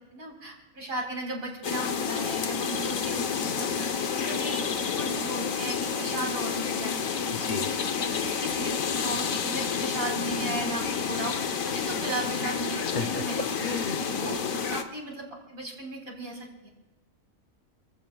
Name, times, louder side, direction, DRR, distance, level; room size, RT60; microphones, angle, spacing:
voice 1, 0.1-7.0 7.4-7.5 8.1-11.4 11.6-13.5 13.9-16.7, right 1 dB, 90° right, -1 dB, 4.6 m, -36 dB
sound 1, 1.6-14.8, left 6 dB, 75° left, 1.4 m, -30 dB
voice 2, 7.3-7.7 13.0-14.0, left 4 dB, 45° left, 6 dB, 0.7 m, -33 dB
29.5 x 15.0 x 2.3 m, 1.2 s
omnidirectional pair, 1.4 m